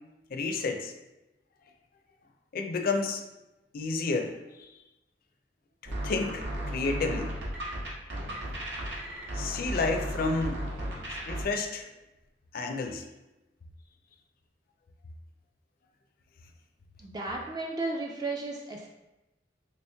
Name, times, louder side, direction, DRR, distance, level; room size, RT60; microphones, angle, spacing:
voice 1, 0.3-0.9 2.5-3.2 3.7-4.4 6.0-7.3 9.3-10.6 11.1-11.8 12.5-13.1, left 3 dB, 55° left, 5 dB, 0.4 m, -30 dB
sound 1, 5.9-11.4, right 1 dB, 85° right, 0.9 m, -35 dB
voice 2, 17.0-18.9, right 2 dB, 25° right, -1 dB, 0.3 m, -34 dB
2.9 x 2.9 x 3.3 m, 1.0 s
head